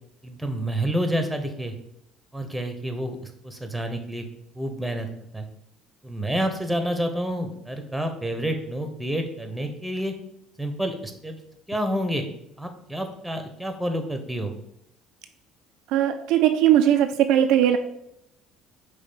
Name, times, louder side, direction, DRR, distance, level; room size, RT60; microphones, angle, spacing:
voice 1, 0.2-1.7 2.3-4.2 4.6-5.1 5.3-5.5 6.0-10.1 10.6-11.4 11.7-12.3 12.6-14.5, equal, 5° right, 6 dB, 0.9 m, -29 dB
voice 2, 15.9-17.8, right 11 dB, 60° right, 7 dB, 0.3 m, -19 dB
5.3 x 3.3 x 5.5 m, 0.78 s
figure-of-eight pair, 55°, 0 cm